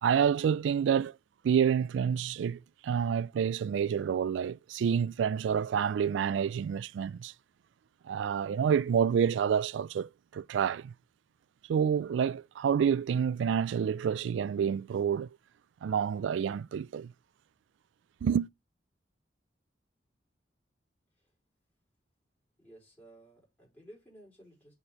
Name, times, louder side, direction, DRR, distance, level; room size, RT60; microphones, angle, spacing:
voice 1, 0.0-1.2 1.4-7.3 8.1-10.9 11.7-15.4 15.8-17.1 18.2-18.5, right 7 dB, 80° right, 0.3 m, -28 dB
voice 2, 22.6-24.7, right 1 dB, 10° left, 4.8 m, -55 dB
6.8 x 4.3 x 4.4 m
head